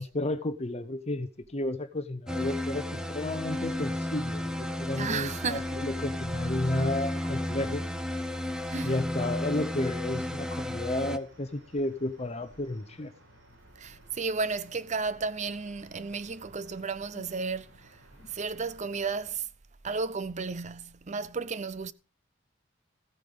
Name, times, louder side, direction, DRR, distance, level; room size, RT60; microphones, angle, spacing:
voice 1, 0.0-7.8 8.8-13.1, left 1 dB, 30° left, 0.8 m, -32 dB
sound 1, 2.3-11.2, left 1 dB, 5° right, 0.8 m, -33 dB
sound 2, 3.3-19.3, equal, 75° right, 6.4 m, -57 dB
voice 2, 5.0-5.7 8.7-8.9 13.8-18.0 18.3-19.5 19.8-21.9, right 4 dB, 35° right, 0.7 m, -33 dB
15.0 x 9.3 x 5.0 m
head